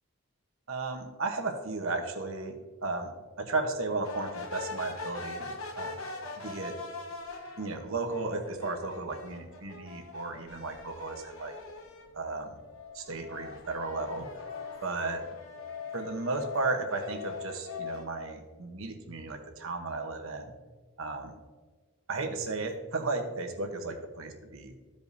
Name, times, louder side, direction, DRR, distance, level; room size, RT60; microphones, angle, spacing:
voice 1, 0.7-3.1 3.4-6.0 6.4-6.8 7.6-11.5 12.1-12.6 12.9-14.4 14.8-15.3 15.9-20.5 21.0-21.3 22.1-24.8, right 3 dB, 65° right, 4 dB, 1.0 m, -34 dB
sound 1, 4.0-12.1 12.6-18.0, left 3 dB, 70° left, 1.1 m, -43 dB
Musical instrument, 12.7-18.0, left 8 dB, 40° left, 1.1 m, -42 dB
14.5 x 5.2 x 2.7 m, 1.4 s
head